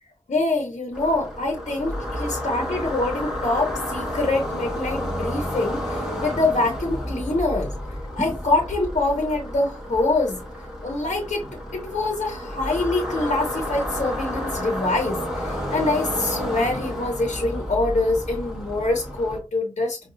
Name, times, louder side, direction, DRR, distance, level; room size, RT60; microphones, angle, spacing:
voice 1, 0.3-7.7 8.2-10.4 10.8-20.0, left 2 dB, 70° left, 2 dB, 0.8 m, -25 dB
sound 1, 0.9-19.4, equal, 5° right, 1.6 m, -31 dB
4.9 x 2.3 x 2.6 m, 0.30 s
wide cardioid pair, 85°, 12 cm